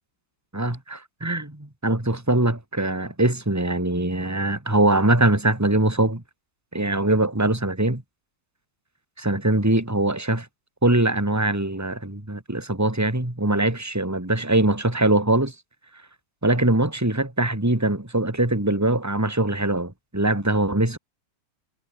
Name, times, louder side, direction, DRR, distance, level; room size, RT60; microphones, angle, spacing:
voice 1, 0.5-6.2 6.7-8.0 9.2-10.5 10.8-15.5 16.4-21.0, right 1 dB, 10° right, 3.4 m, -22 dB
omnidirectional pair, 2.2 m